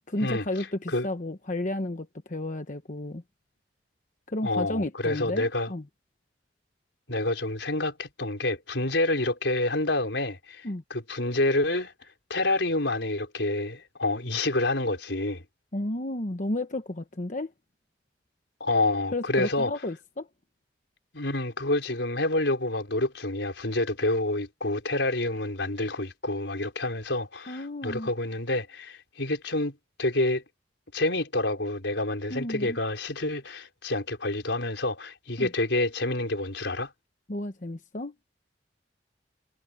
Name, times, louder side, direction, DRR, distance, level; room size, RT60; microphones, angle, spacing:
voice 1, 0.1-3.2 4.3-5.8 10.6-10.8 15.7-17.5 19.1-20.3 27.5-28.1 32.3-32.8 35.4-35.5 37.3-38.1, left 1 dB, 45° left, 1.1 m, -32 dB
voice 2, 4.4-5.7 7.1-10.6 10.9-11.9 12.3-15.4 18.6-19.7 21.1-30.4 30.9-36.9, left 2 dB, 85° left, 4.6 m, -28 dB
head